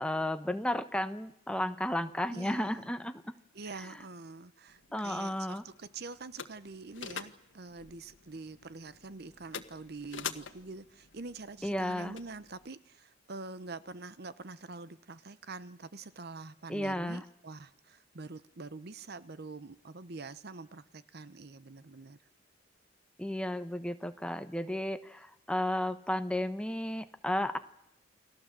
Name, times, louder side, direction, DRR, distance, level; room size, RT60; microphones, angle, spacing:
voice 1, 0.0-3.3 3.8-4.0 4.9-5.6 11.6-12.1 16.7-17.2 23.2-27.6, left 1 dB, 5° left, 9 dB, 1.1 m, -33 dB
voice 2, 2.3-2.9 3.5-22.2, right 3 dB, 55° right, 15 dB, 0.9 m, -45 dB
sound 1, 4.7-12.7, left 7 dB, 80° left, 1.5 m, -47 dB
29.5 x 20.5 x 7.5 m, 0.82 s
head